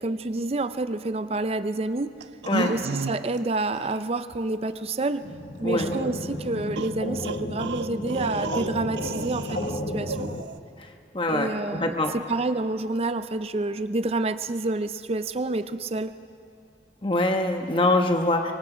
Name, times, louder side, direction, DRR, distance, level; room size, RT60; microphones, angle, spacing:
voice 1, 0.0-2.1 2.7-5.2 5.6-10.3 11.3-16.1, right 2 dB, 35° right, 12 dB, 0.5 m, -28 dB
sound 1, 2.2-3.4 3.7-4.0 5.9-6.0 6.8-9.8 10.1-10.6, right 3 dB, 90° right, 0.7 m, -32 dB
sound 2, 5.2-10.4, left 1 dB, 50° left, 1.3 m, -32 dB
voice 2, 11.1-12.1 17.0-18.5, left 2 dB, 30° left, 4 dB, 1.1 m, -24 dB
25.0 x 23.5 x 5.0 m, 2.4 s
head